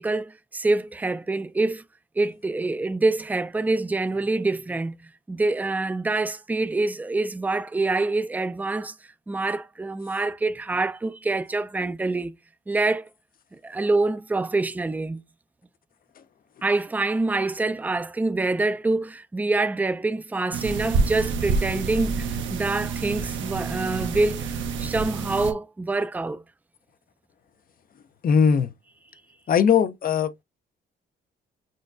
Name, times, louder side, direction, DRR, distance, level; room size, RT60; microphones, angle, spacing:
voice 1, 0.0-1.8 2.2-4.9 5.3-8.9 9.3-12.3 12.7-13.0 13.6-15.2 16.6-22.3 22.5-26.4, right 2 dB, 10° right, 0.4 m, -26 dB
sound 1, 20.5-25.5, right 4 dB, 75° right, 0.8 m, -28 dB
voice 2, 28.2-28.7 29.5-30.4, left 7 dB, 45° left, 0.6 m, -20 dB
6.2 x 2.2 x 2.4 m
cardioid pair, 90°, 20 cm